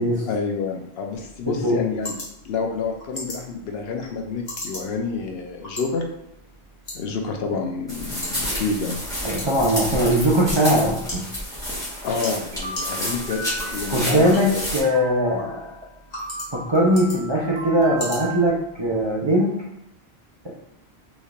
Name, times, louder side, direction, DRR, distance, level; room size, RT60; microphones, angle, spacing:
voice 1, 0.3-2.2 2.4-6.1 6.9-9.0 12.0-14.7, left 4 dB, 75° left, 3 dB, 0.8 m, -28 dB
sound 1, 1.1-19.1, left 1 dB, 45° left, 1.3 m, -40 dB
voice 2, 1.5-1.8 9.2-11.2 13.9-15.7 16.5-19.6 20.4-20.5, equal, 40° right, -4 dB, 0.4 m, -20 dB
sound 2, 7.9-14.8, equal, 5° left, 1.2 m, -30 dB
sound 3, 12.5-14.5 14.8-15.9 16.2-18.5, right 1 dB, 75° right, 1.1 m, -36 dB
4.1 x 3.2 x 2.4 m, 0.83 s
omnidirectional pair, 1.1 m